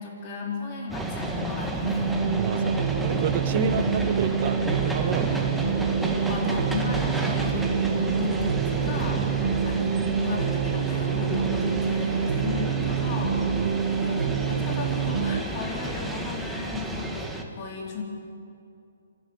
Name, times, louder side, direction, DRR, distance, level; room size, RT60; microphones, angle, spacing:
voice 1, 0.0-2.1 3.5-4.0 6.3-18.0, left 4 dB, 35° left, 0 dB, 4.6 m, -35 dB
sound 1, 0.9-17.4, right 1 dB, 5° right, 1.6 m, -31 dB
sound 2, 1.8-15.4, right 7 dB, 65° right, 1.5 m, -27 dB
voice 2, 2.4-5.5 13.6-13.8, right 12 dB, 40° right, 17 dB, 0.4 m, -31 dB
27.5 x 12.5 x 9.4 m, 2.6 s
hypercardioid pair, 155°, 0 cm